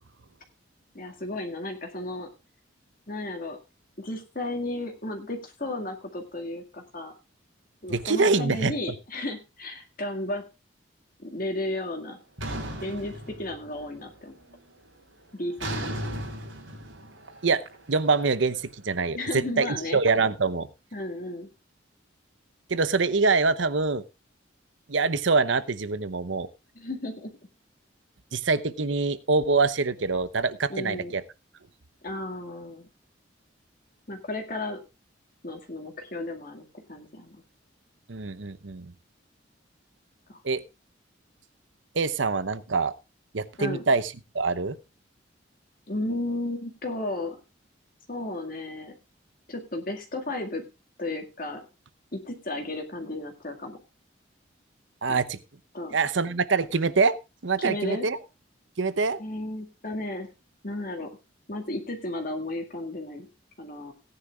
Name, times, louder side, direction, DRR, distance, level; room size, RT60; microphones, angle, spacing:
voice 1, 0.9-2.3 3.1-3.6 4.0-7.1 7.8-10.4 11.2-12.2 12.8-14.4 15.3-16.1 19.1-20.0 20.9-21.5 26.8-27.3 30.7-31.1 32.0-32.9 34.1-34.8 35.4-37.4 40.3-40.4 43.6-43.8 45.9-47.4 48.1-48.9 49.5-50.6 51.0-51.6 52.1-53.8 55.1-55.2 55.7-56.0 57.6-58.1 59.2-60.3 60.6-61.1 61.5-63.3 63.6-63.9, left 1 dB, 45° left, 3 dB, 2.1 m, -34 dB
voice 2, 7.9-8.7 17.4-17.6 17.9-20.7 22.7-24.0 24.9-26.5 28.3-31.2 38.1-38.9 40.4-40.6 41.9-42.9 43.3-44.8 55.0-55.4 55.9-57.1 57.4-58.2 58.8-59.2, right 4 dB, 75° right, 15 dB, 0.9 m, -25 dB
sound 1, 12.4-13.9 14.3-14.7 15.6-18.7, right 1 dB, 90° right, 3.9 m, -36 dB
18.0 x 9.9 x 2.4 m, 0.27 s
head